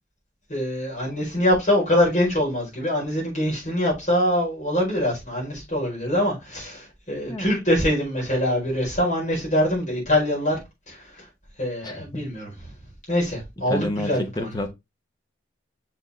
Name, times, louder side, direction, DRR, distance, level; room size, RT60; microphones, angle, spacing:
voice 1, 0.5-10.6 10.9-11.0 11.6-12.5 13.1-14.5, left 1 dB, 40° left, 4.7 m, -24 dB
voice 2, 11.8-12.3 13.6-14.7, left 1 dB, 20° left, 0.9 m, -30 dB
6.6 x 4.6 x 3.1 m
head